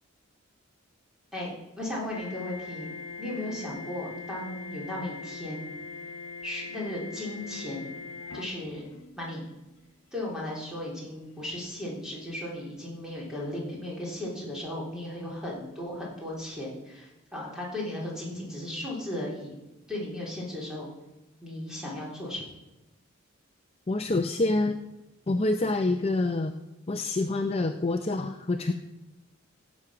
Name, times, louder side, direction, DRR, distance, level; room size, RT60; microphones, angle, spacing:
voice 1, 1.3-2.9 3.2-5.7 6.4-8.0 8.3-8.9 9.2-9.5 10.1-19.6 19.9-20.9 21.4-22.4, left 1 dB, 5° right, -4 dB, 3.6 m, -36 dB
sound 1, 2.1-9.5 10.5-10.7 11.2-11.5 13.6-13.7, left 4 dB, 80° left, 0.6 m, -42 dB
voice 2, 23.9-24.8 25.3-26.6 26.9-28.7, left 2 dB, 30° left, 6 dB, 0.5 m, -26 dB
16.0 x 7.5 x 5.8 m, 0.97 s
head